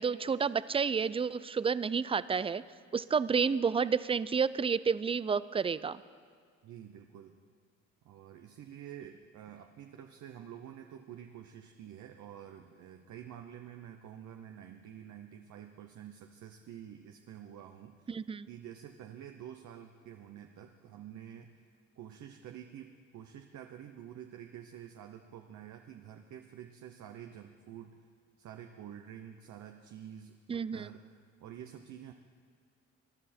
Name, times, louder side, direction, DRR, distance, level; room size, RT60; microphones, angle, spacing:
voice 1, 0.0-2.6 2.9-6.0 18.1-18.5 30.5-30.9, right 6 dB, 20° right, 17 dB, 0.3 m, -30 dB
voice 2, 6.6-7.4 8.0-18.1 18.5-28.0 28.4-32.1, right 10 dB, 75° right, 5 dB, 0.8 m, -49 dB
21.0 x 11.5 x 4.3 m, 2.1 s
cardioid pair, 90°, 30 cm